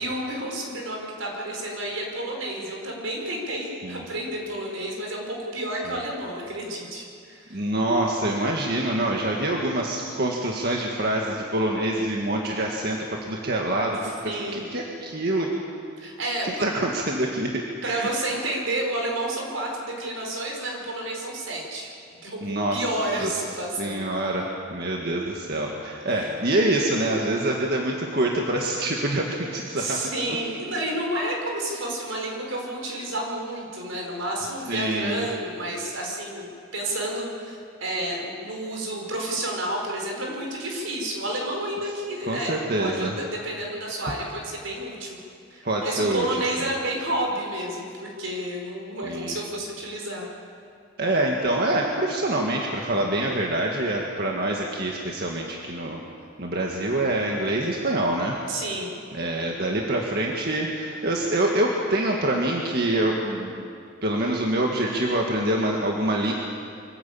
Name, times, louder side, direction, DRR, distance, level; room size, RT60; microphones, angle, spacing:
voice 1, 0.0-7.7 14.2-14.7 16.0-16.6 17.8-21.9 22.2-24.0 26.0-26.3 29.7-45.2 45.5-50.2 58.5-58.9, right 1 dB, 80° right, 0 dB, 5.0 m, -30 dB
voice 2, 7.5-15.5 16.4-18.1 22.4-22.8 23.2-23.3 23.8-30.0 30.3-30.4 34.7-35.3 42.3-43.1 45.6-46.3 46.6-46.7 49.0-49.4 51.0-56.0 56.4-58.4 59.1-63.7 64.0-66.3, right 1 dB, 50° right, -1 dB, 1.9 m, -26 dB
25.0 x 15.0 x 8.8 m, 2.4 s
head